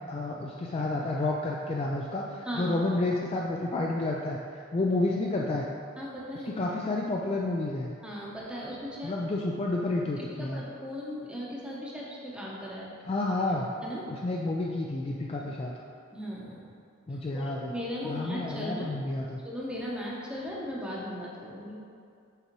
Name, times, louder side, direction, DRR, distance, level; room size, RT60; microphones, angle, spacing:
voice 1, 0.1-4.4 4.7-5.7 6.6-7.9 9.0-10.6 13.1-13.7 14.1-15.7 17.1-17.7 18.0-19.4, left 2 dB, 30° left, -2 dB, 0.3 m, -30 dB
voice 2, 6.0-6.6 8.0-9.1 10.4-12.9 13.8-14.0 15.3-15.5 16.1-16.6 17.3-18.9 19.4-21.8, equal, 5° right, -5 dB, 0.8 m, -37 dB
6.6 x 4.7 x 3.0 m, 2.4 s
head